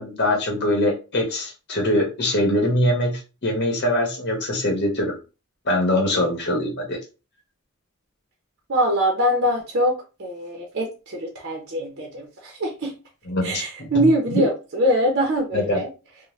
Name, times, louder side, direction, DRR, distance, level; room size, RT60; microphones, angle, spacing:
voice 1, 0.0-5.2 5.7-7.0 13.3-14.4 15.5-15.8, left 1 dB, 55° left, 1 dB, 1.0 m, -23 dB
voice 2, 8.7-12.9 13.4-15.9, equal, 55° right, 0 dB, 0.6 m, -23 dB
2.6 x 2.1 x 3.1 m, 0.31 s
head